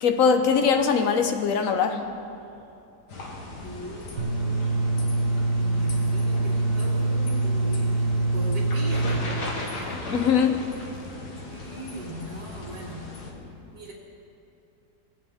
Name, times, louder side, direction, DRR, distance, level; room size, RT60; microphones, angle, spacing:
voice 1, 0.0-2.1 6.5-6.6 9.9-10.7, left 6 dB, 60° left, 1.1 m, -22 dB
sound 1, 3.1-13.3, left 2 dB, 85° left, 2.0 m, -38 dB
voice 2, 3.6-4.7 5.2-9.9 11.5-13.1 13.7-13.9, equal, 70° right, 2.4 m, -40 dB
sound 2, 4.2-9.2, right 2 dB, 50° right, 1.2 m, -24 dB
21.0 x 8.5 x 3.6 m
omnidirectional pair, 1.7 m